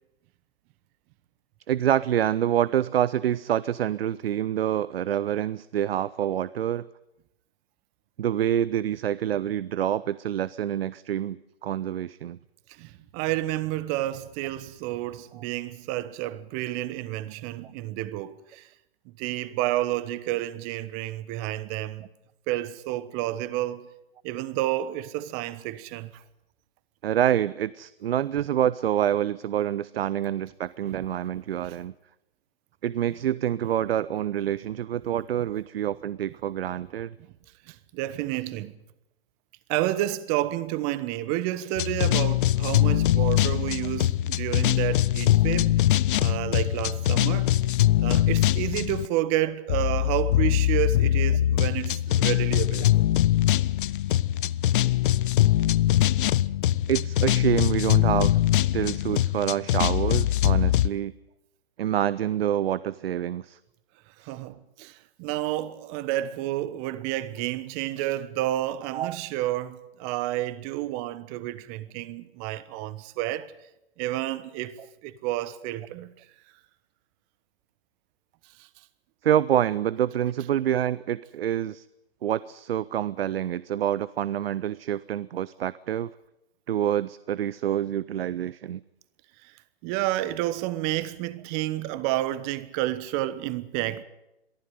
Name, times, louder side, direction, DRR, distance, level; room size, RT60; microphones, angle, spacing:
voice 1, 1.7-6.8 8.2-12.4 27.0-31.9 32.8-37.1 56.9-61.1 61.8-63.6 64.2-64.4 68.9-69.2 79.2-81.8 82.2-86.1 86.7-88.8, right 10 dB, 65° right, 0.7 m, -27 dB
voice 2, 12.7-18.7 19.2-22.1 22.5-23.9 24.2-26.2 31.6-31.8 37.7-38.7 39.7-45.8 46.2-47.5 48.0-53.0 64.2-73.5 74.0-76.1 78.6-78.7 89.4-89.5 89.8-94.0, right 14 dB, 30° right, 1.2 m, -30 dB
sound 1, 41.8-49.1 49.7-60.9, left 13 dB, 55° left, 0.7 m, -22 dB
23.0 x 14.5 x 9.3 m
hypercardioid pair, 130°, 32 cm